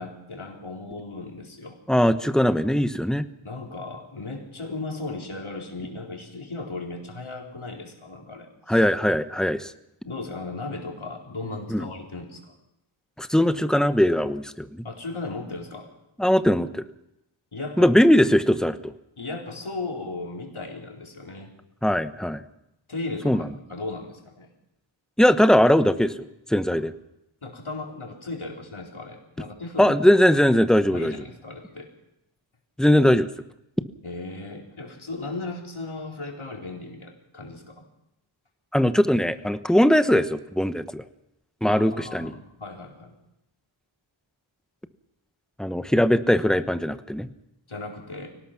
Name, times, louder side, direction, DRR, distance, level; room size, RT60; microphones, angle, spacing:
voice 1, 0.0-1.8 3.4-8.8 10.0-12.5 14.8-15.9 17.5-17.9 19.2-21.5 22.9-24.5 27.4-29.9 30.9-31.9 34.0-37.8 41.7-43.1 47.7-48.3, left 3 dB, 70° left, 0 dB, 4.5 m, -36 dB
voice 2, 1.9-3.3 8.7-9.7 11.7-11.9 13.2-14.8 16.2-16.8 17.8-18.9 21.8-22.4 23.2-23.5 25.2-26.1 26.5-26.9 29.8-31.1 32.8-33.3 38.7-41.0 41.6-42.3 45.6-47.3, equal, ahead, 10 dB, 1.0 m, -20 dB
24.0 x 18.5 x 6.0 m, 0.86 s
wide cardioid pair, 55°, 50 cm